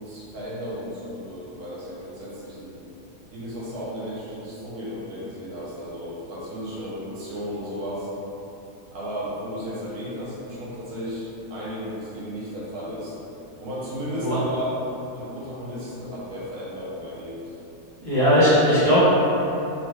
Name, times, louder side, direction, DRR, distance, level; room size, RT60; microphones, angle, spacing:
voice 1, 0.0-2.8 3.3-8.1 8.9-13.2 13.6-14.8 15.1-17.4, equal, 70° right, -7 dB, 1.3 m, -34 dB
voice 2, 18.0-19.0, equal, 45° right, -14 dB, 1.2 m, -18 dB
3.3 x 3.0 x 2.2 m, 3.0 s
omnidirectional pair, 1.8 m